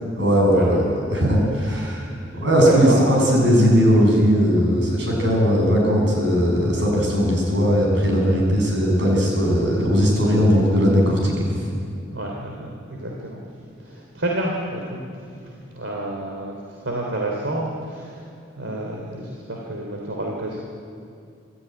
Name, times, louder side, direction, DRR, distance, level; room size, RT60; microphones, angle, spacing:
voice 1, 0.1-0.8 1.1-2.0 2.3-11.6, equal, 65° right, -1 dB, 7.8 m, -18 dB
voice 2, 2.3-3.3 8.2-8.4 10.5-10.6 12.1-16.6 16.8-18.2 18.6-20.6, right 1 dB, 85° right, -1 dB, 3.2 m, -29 dB
26.0 x 14.0 x 9.5 m, 2.4 s
head